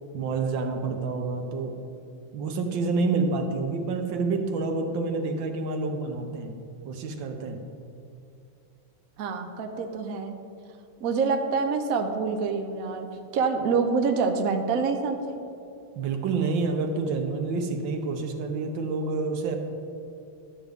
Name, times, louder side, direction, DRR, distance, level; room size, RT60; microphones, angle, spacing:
voice 1, 0.1-1.8 2.3-6.6 6.8-7.6 15.9-19.6, right 4 dB, 65° right, 5 dB, 1.4 m, -28 dB
voice 2, 9.2-10.4 11.0-15.5, right 5 dB, 85° right, 5 dB, 0.7 m, -26 dB
12.0 x 9.3 x 3.5 m, 2.5 s
omnidirectional pair, 2.4 m